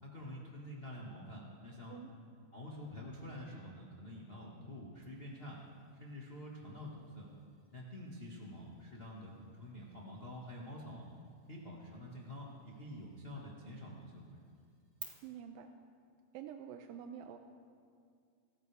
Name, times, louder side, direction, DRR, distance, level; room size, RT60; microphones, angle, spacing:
voice 1, 0.0-2.0 2.5-5.6 6.0-7.3 7.7-11.0 11.5-14.5, left 1 dB, 30° left, -4 dB, 1.0 m, -48 dB
sound 1, 5.0-15.0, right 4 dB, 40° right, 1.0 m, -60 dB
voice 2, 15.2-15.7 16.3-17.4, right 9 dB, 85° right, 5 dB, 2.4 m, -47 dB
26.0 x 14.5 x 3.5 m, 2.2 s
omnidirectional pair, 4.2 m